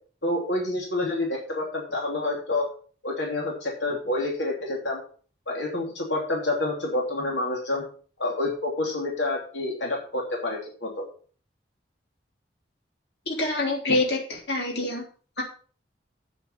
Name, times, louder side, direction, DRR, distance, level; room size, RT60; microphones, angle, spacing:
voice 1, 0.2-2.7 3.0-5.0 5.5-7.8 8.2-10.9, left 2 dB, 85° left, -1 dB, 3.0 m, -28 dB
voice 2, 13.3-15.0 15.4-15.5, left 2 dB, 70° left, 0 dB, 3.2 m, -26 dB
8.1 x 7.5 x 5.9 m, 0.42 s
head